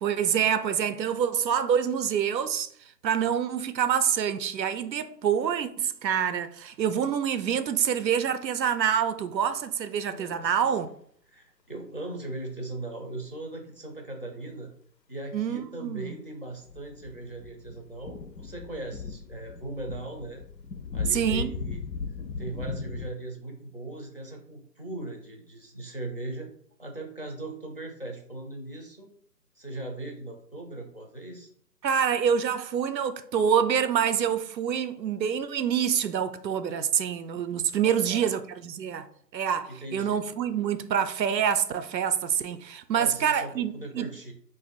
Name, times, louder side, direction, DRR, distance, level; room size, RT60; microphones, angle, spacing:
voice 1, 0.0-10.9 15.3-16.2 21.1-21.6 31.8-39.1 39.3-44.1, right 8 dB, 90° right, 0.6 m, -26 dB
voice 2, 10.0-10.5 11.3-14.7 15.1-20.4 20.9-21.8 22.4-26.5 26.8-29.1 29.6-31.5 37.8-38.3 39.7-40.2 42.9-44.3, right 2 dB, 35° left, 0.4 m, -39 dB
sound 1, 16.5-23.1, left 5 dB, 90° left, 0.6 m, -37 dB
2.5 x 2.5 x 4.0 m
figure-of-eight pair, 160°, 50 cm